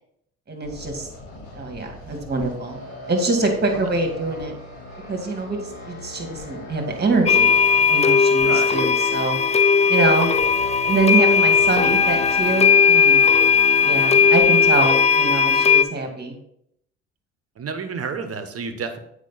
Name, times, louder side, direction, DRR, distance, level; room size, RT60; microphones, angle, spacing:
voice 1, 0.5-1.1 1.5-2.8 3.1-4.5 5.1-5.6 5.8-7.5 7.9-9.4 9.9-10.3 10.9-13.2 13.8-16.4, right 3 dB, 30° right, 3 dB, 2.2 m, -24 dB
sound 1, 0.6-14.7, left 2 dB, 75° left, 3.1 m, -39 dB
sound 2, 7.3-15.8, left 6 dB, 20° left, 0.5 m, -17 dB
voice 2, 8.4-8.8 17.6-19.0, right 5 dB, 45° right, 9 dB, 1.2 m, -30 dB
8.2 x 5.2 x 4.1 m, 0.72 s
hypercardioid pair, 60°, 33 cm